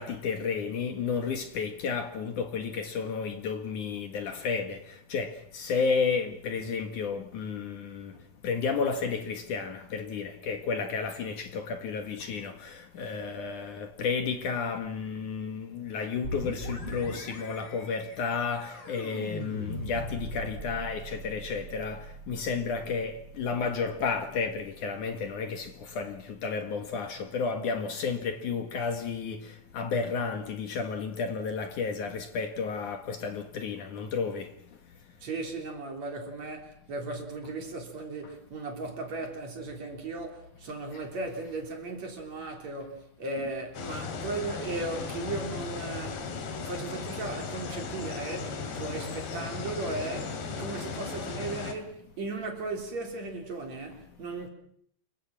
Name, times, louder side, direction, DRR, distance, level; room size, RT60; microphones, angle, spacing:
voice 1, 0.0-8.1 8.4-34.5 40.9-41.0, left 5 dB, 60° left, 2.9 m, -32 dB
sound 1, 16.2-25.8, equal, 30° left, 6.3 m, -41 dB
voice 2, 35.2-46.3 46.6-54.5, right 3 dB, 45° right, 4.6 m, -36 dB
sound 2, 43.7-51.7, left 5 dB, 85° left, 4.8 m, -36 dB
28.5 x 23.5 x 6.1 m
omnidirectional pair, 4.5 m